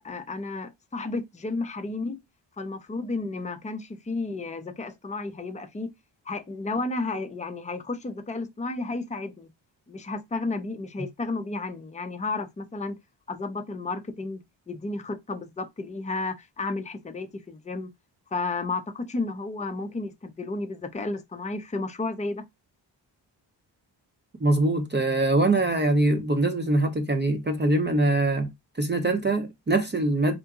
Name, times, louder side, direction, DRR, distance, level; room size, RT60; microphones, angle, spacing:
voice 1, 0.0-2.2 2.6-5.9 6.3-9.5 9.9-13.0 13.3-14.4 14.7-17.9 18.3-22.4, left 3 dB, 15° left, 0.6 m, -32 dB
voice 2, 24.4-28.5 28.8-30.4, right 2 dB, 25° right, 0.8 m, -23 dB
3.7 x 2.6 x 2.4 m
cardioid pair, 55°, 45 cm